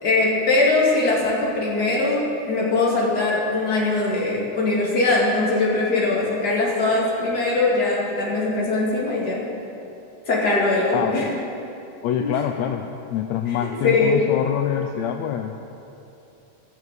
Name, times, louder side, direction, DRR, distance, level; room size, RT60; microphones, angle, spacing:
voice 1, 0.0-9.5 10.3-11.3 12.2-12.3 13.6-14.2, left 2 dB, 35° left, -5 dB, 2.6 m, -21 dB
voice 2, 10.9-11.3 12.0-15.8, left 10 dB, 80° left, 4 dB, 1.6 m, -26 dB
21.0 x 7.2 x 4.2 m, 2.8 s
omnidirectional pair, 3.5 m